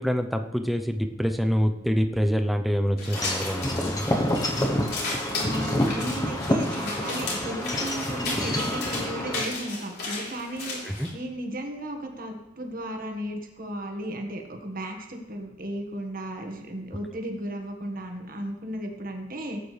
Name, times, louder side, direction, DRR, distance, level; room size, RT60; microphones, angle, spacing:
voice 1, 0.0-4.1 10.8-11.1, equal, ahead, 5 dB, 0.7 m, -26 dB
sound 1, 3.0-11.1, left 2 dB, 60° left, 3.9 m, -34 dB
Wind chime / Wind, 3.1-9.4, left 1 dB, 20° left, 1.0 m, -28 dB
voice 2, 5.3-10.8 11.1-19.6, right 1 dB, 50° right, 3 dB, 1.7 m, -35 dB
17.5 x 8.8 x 3.4 m, 0.97 s
head